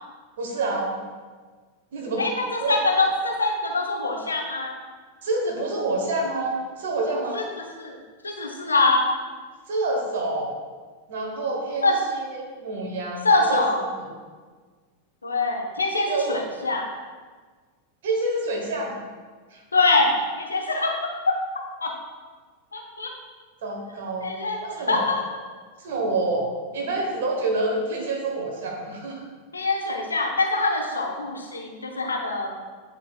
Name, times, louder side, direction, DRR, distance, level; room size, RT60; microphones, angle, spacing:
voice 1, 0.4-0.9 1.9-2.3 2.6-2.7 5.2-7.5 9.7-10.5 11.1-13.6 13.9-14.0 16.1-16.4 18.0-18.9 19.5-19.6 23.6-25.1 25.8-29.3, right 2 dB, 60° right, 0 dB, 1.3 m, -27 dB
voice 2, 2.2-4.8 7.3-7.4 7.8-8.0 8.2-9.1 11.8-12.0 13.2-13.8 15.2-16.8 19.7-20.9 21.8-22.0 22.7-23.1 24.2-25.2 29.5-32.5, left 2 dB, 75° left, 2 dB, 0.8 m, -24 dB
9.9 x 3.9 x 2.4 m, 1.5 s
figure-of-eight pair, 90°, 0 cm